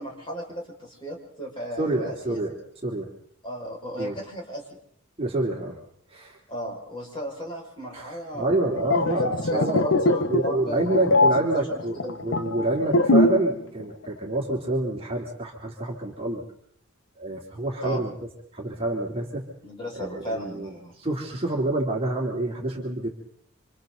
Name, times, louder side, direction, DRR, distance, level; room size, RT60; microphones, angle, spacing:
voice 1, 0.0-2.4 3.4-4.6 6.5-9.2 9.5-11.3 11.5-12.2 17.8-18.0 19.6-20.9, right 1 dB, 25° left, -1 dB, 6.0 m, -35 dB
voice 2, 1.8-2.5 2.8-3.1 4.0-4.2 5.2-5.8 6.1-6.4 7.9-16.4 17.2-18.1 18.5-19.5 19.9-20.7 21.0-23.1, right 2 dB, 25° right, -1 dB, 3.4 m, -27 dB
sound 1, 8.6-13.5 13.8-14.1, left 2 dB, 65° left, 0.9 m, -22 dB
29.5 x 26.5 x 4.0 m, 0.66 s
head